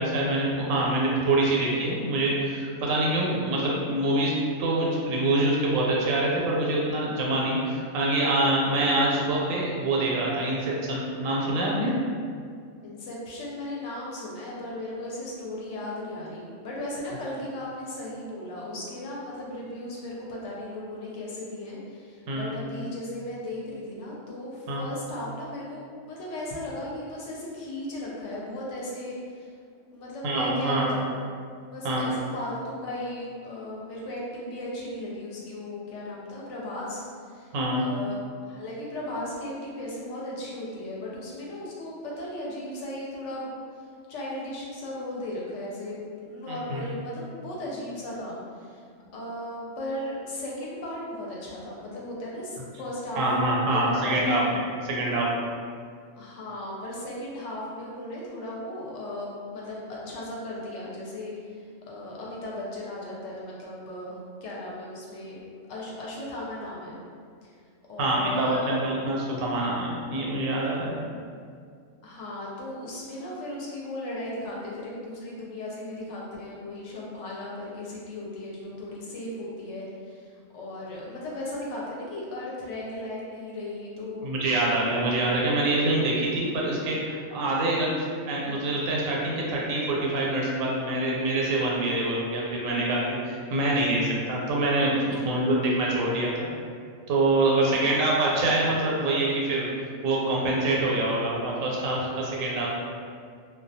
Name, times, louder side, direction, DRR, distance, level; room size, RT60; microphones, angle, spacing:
voice 1, 0.0-4.3 4.6-11.9 22.3-22.5 24.7-24.8 30.2-30.9 31.8-32.1 37.5-37.8 46.5-46.8 53.2-54.4 54.8-55.2 68.0-70.9 84.2-96.5 97.1-99.7 100.0-102.7, right 2 dB, 90° right, -4 dB, 1.0 m, -25 dB
voice 2, 12.8-29.5 29.9-31.2 31.7-37.0 37.3-37.5 37.8-38.2 38.4-43.5 44.1-48.8 49.1-53.2 53.7-54.4 56.1-61.3 61.9-64.2 64.4-65.4 65.7-67.0 67.4-67.5 67.9-68.7 72.0-80.3 80.5-84.3 97.7-98.0, left 1 dB, 70° left, -5 dB, 0.9 m, -36 dB
2.3 x 2.2 x 2.6 m, 2.2 s
omnidirectional pair, 1.3 m